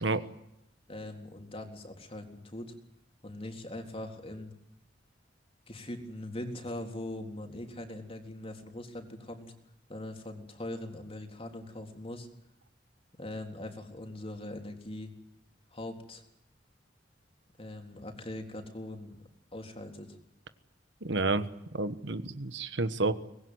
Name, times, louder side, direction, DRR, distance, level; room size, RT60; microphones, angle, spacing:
voice 1, 0.9-2.7 3.2-4.5 5.7-9.5 9.9-12.3 13.2-15.1 15.7-16.2 17.6-19.2 19.5-20.2, left 1 dB, 35° left, 4 dB, 3.7 m, -41 dB
voice 2, 21.0-21.5 21.7-23.1, right 3 dB, 75° right, 12 dB, 1.4 m, -30 dB
24.0 x 20.0 x 9.6 m, 0.81 s
head